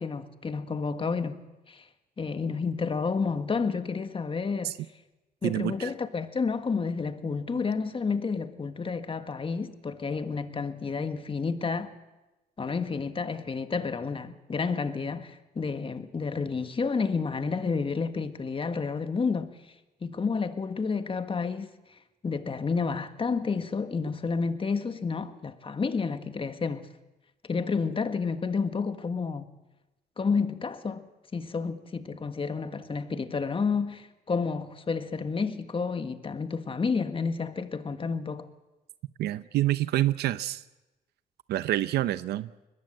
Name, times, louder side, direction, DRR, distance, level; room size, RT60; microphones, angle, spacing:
voice 1, 0.0-1.8 2.2-4.7 5.4-11.9 12.6-19.5 20.0-21.7 22.2-26.9 27.5-29.4 30.2-31.1 31.3-38.5, left 5 dB, 35° left, 1.7 m, -30 dB
voice 2, 5.4-5.9 39.2-40.6 41.5-42.5, right 14 dB, 90° right, 0.7 m, -27 dB
22.5 x 20.5 x 7.6 m
cardioid pair, 90°, 16 cm